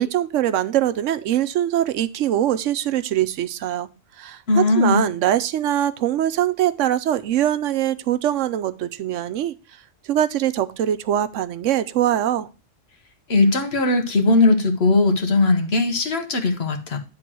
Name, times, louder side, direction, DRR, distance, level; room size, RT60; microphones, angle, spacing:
voice 1, 0.0-3.9 4.2-9.5 10.0-12.5, right 11 dB, 85° right, 12 dB, 1.0 m, -22 dB
voice 2, 4.5-5.0 13.3-17.0, left 3 dB, 55° left, 6 dB, 1.3 m, -19 dB
9.3 x 3.7 x 6.1 m, 0.32 s
omnidirectional pair, 1.3 m